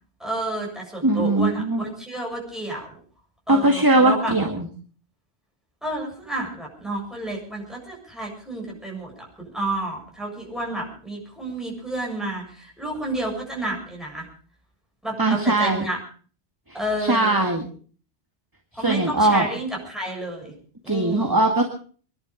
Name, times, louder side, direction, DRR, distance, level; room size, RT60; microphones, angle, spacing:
voice 1, 0.2-3.0 3.5-4.3 5.8-14.3 15.0-16.0 16.7-17.5 18.7-20.5 20.8-21.4, right 1 dB, ahead, -2 dB, 7.3 m, -30 dB
voice 2, 1.0-1.9 3.5-4.7 15.2-15.8 16.7-16.8 17.1-17.7 18.8-19.5 20.9-21.6, right 2 dB, 20° right, 3 dB, 1.9 m, -20 dB
24.5 x 11.5 x 5.1 m, 0.43 s
omnidirectional pair, 1.2 m